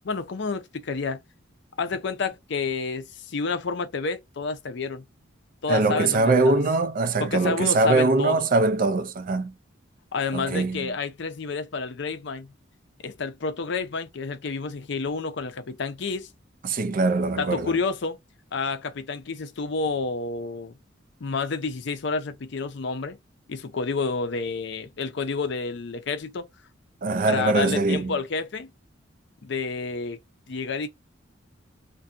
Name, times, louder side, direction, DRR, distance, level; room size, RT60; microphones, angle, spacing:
voice 1, 0.0-1.2 1.8-5.0 5.6-6.6 7.2-8.4 10.1-12.5 13.0-16.3 17.4-18.2 18.5-20.7 21.2-23.2 23.5-26.5 27.2-28.7 29.4-30.2 30.5-30.9, left 4 dB, 60° left, 0.5 m, -29 dB
voice 2, 5.7-9.5 10.3-10.9 16.6-17.8 27.0-28.1, right 3 dB, 45° right, 0.4 m, -22 dB
2.6 x 2.5 x 2.4 m
head